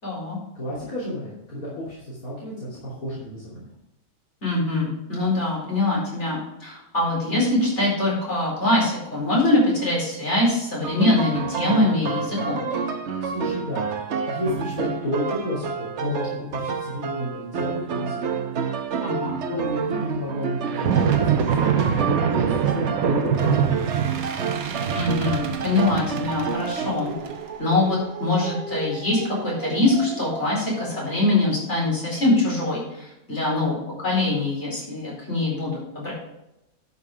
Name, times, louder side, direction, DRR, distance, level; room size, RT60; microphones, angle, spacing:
voice 1, 0.0-0.4 4.4-12.7 19.0-19.3 24.9-27.1 27.6-36.1, left 2 dB, 50° left, -5 dB, 4.8 m, -23 dB
voice 2, 0.5-3.7 13.2-13.9 14.3-18.2 19.4-21.8 22.0-24.2, left 1 dB, 75° left, -8 dB, 3.3 m, -31 dB
sound 1, 10.8-26.9, right 6 dB, 55° right, 1.1 m, -29 dB
sound 2, 20.7-31.2, right 7 dB, 75° right, 1.3 m, -26 dB
11.0 x 5.8 x 4.9 m, 0.89 s
omnidirectional pair, 1.5 m